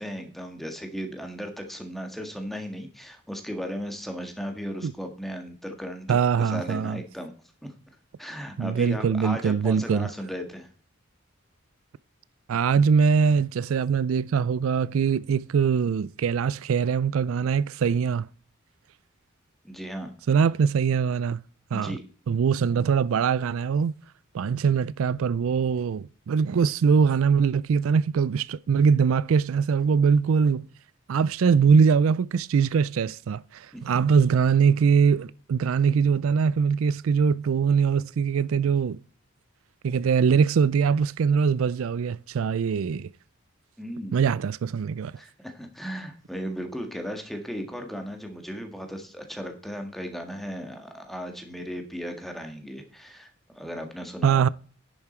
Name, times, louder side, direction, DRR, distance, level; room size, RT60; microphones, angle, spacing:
voice 1, 0.0-7.3 7.6-7.7 8.2-10.7 19.6-20.1 21.7-22.0 33.7-34.0 43.8-44.2 45.2-54.4, equal, ahead, 1.7 m, -36 dB
voice 2, 6.1-7.0 8.6-10.1 12.5-18.3 20.3-21.4 21.7-22.0 22.3-23.9 24.3-30.7 31.1-39.0 39.8-43.1 44.1-45.1 54.2-54.5, right 6 dB, 85° right, 0.4 m, -22 dB
10.5 x 7.2 x 4.4 m
head